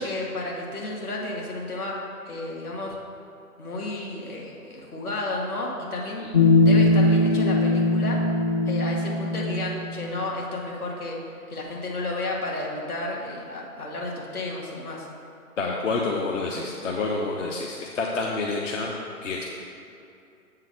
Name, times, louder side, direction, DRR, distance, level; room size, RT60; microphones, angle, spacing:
voice 1, 0.0-2.0 2.3-3.0 3.6-6.3 6.6-8.2 8.7-11.2 11.5-15.1, left 2 dB, 75° left, -2 dB, 1.9 m, -32 dB
sound 1, 6.3-10.2, left 2 dB, 35° left, 0.8 m, -20 dB
voice 2, 15.6-18.9 19.2-19.4, left 3 dB, 55° left, -2 dB, 0.9 m, -28 dB
7.6 x 3.9 x 6.4 m, 2.6 s
figure-of-eight pair, 140°, 45 cm